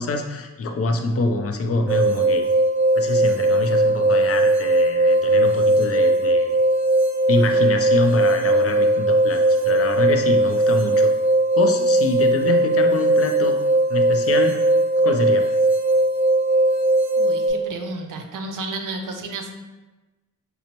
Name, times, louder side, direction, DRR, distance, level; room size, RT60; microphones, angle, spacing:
voice 1, 0.0-2.4 2.9-6.6 7.3-11.1 11.6-13.6 13.9-14.6 15.0-15.5, left 3 dB, 45° left, 5 dB, 0.4 m, -25 dB
sound 1, 1.9-17.5, right 1 dB, 5° right, 0.8 m, -19 dB
voice 2, 17.2-19.5, right 3 dB, 70° right, 4 dB, 0.6 m, -32 dB
5.2 x 2.0 x 2.8 m, 1.1 s
cardioid pair, 100°, 32 cm